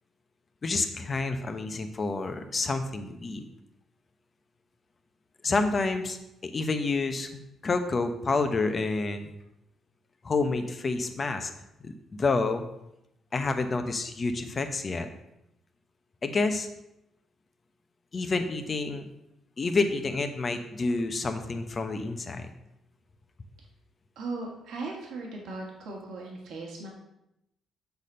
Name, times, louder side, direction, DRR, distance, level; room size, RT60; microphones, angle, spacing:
voice 1, 0.6-3.4 5.4-6.2 6.4-9.3 10.2-11.5 11.8-12.6 13.3-15.1 16.2-16.7 18.1-19.1 19.6-22.5, left 3 dB, 35° left, 7 dB, 0.9 m, -29 dB
voice 2, 24.2-26.9, right 3 dB, 80° right, -1 dB, 1.8 m, -38 dB
6.9 x 4.2 x 6.6 m, 0.84 s
cardioid pair, 90°, 0 cm